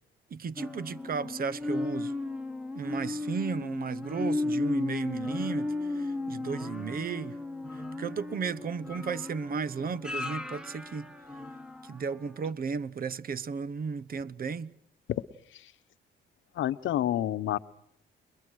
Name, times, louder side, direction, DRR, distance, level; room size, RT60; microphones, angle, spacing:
voice 1, 0.3-2.1 2.7-7.4 7.7-11.1 11.8-14.7, right 5 dB, 45° right, 1.0 m, -34 dB
sound 1, 0.6-12.0 12.5-12.6, left 2 dB, 5° right, 2.0 m, -35 dB
voice 2, 16.5-17.6, left 12 dB, 75° left, 1.0 m, -29 dB
29.0 x 22.5 x 6.3 m
cardioid pair, 90°, 20 cm